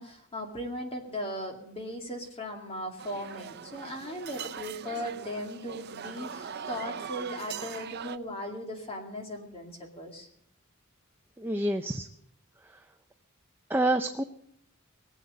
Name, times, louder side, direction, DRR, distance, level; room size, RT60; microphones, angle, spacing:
voice 1, 0.0-10.3, equal, 30° left, 2 dB, 2.3 m, -38 dB
sound 1, 3.0-8.2, right 7 dB, 50° right, 0.6 m, -41 dB
voice 2, 11.4-12.1 13.7-14.2, right 1 dB, 10° right, 5 dB, 0.5 m, -27 dB
19.5 x 8.0 x 8.5 m, 0.72 s
head